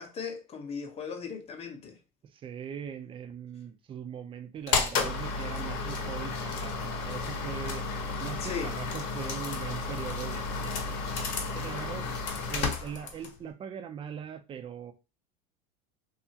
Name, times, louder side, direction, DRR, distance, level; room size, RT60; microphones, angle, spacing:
voice 1, 0.0-2.0 8.4-8.8, left 6 dB, 30° left, 0.7 m, -37 dB
voice 2, 2.3-7.8 8.2-12.1 12.5-14.9, right 8 dB, 25° right, 0.4 m, -41 dB
sound 1, 4.7-13.4, left 4 dB, 60° left, 0.8 m, -32 dB
2.7 x 2.4 x 2.7 m
supercardioid pair, 120°, 21 cm